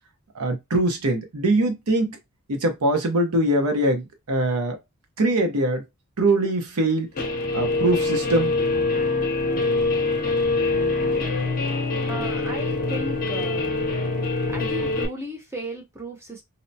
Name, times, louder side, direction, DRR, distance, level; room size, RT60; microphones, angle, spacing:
voice 1, 0.3-2.2 2.5-4.8 5.2-5.8 6.2-7.1 7.5-8.5, right 1 dB, 85° right, 0.8 m, -22 dB
Guitar, 7.2-15.1, left 3 dB, 40° left, 0.7 m, -24 dB
voice 2, 12.1-13.7 14.5-16.4, right 1 dB, 10° right, 0.7 m, -35 dB
2.8 x 2.1 x 2.7 m
head